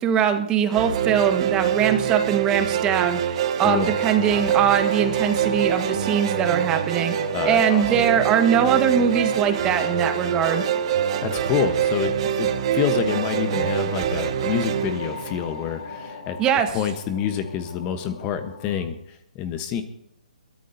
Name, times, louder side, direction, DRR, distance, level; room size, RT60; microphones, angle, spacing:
voice 1, 0.0-7.1 7.5-10.6 16.4-16.7, right 8 dB, 20° right, 7 dB, 1.5 m, -22 dB
sound 1, 0.7-16.0, right 9 dB, 40° right, 1.1 m, -25 dB
sound 2, 3.6-18.9, left 5 dB, 70° left, 3.9 m, -38 dB
voice 2, 3.6-3.9 7.3-8.0 11.2-16.4 16.7-19.8, left 9 dB, 25° left, 9 dB, 1.1 m, -27 dB
22.0 x 15.0 x 2.8 m, 0.71 s
hypercardioid pair, 145°, 5 cm